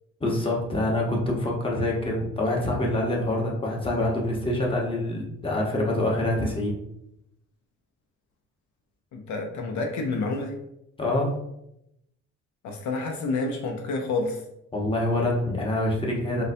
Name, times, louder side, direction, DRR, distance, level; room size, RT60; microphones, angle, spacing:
voice 1, 0.2-6.8 11.0-11.3 14.7-16.4, left 1 dB, 15° left, -2 dB, 0.9 m, -26 dB
voice 2, 9.1-10.6 12.6-14.4, left 3 dB, 70° left, 2 dB, 0.6 m, -29 dB
3.9 x 2.2 x 2.6 m, 0.80 s
cardioid pair, 90°, 30 cm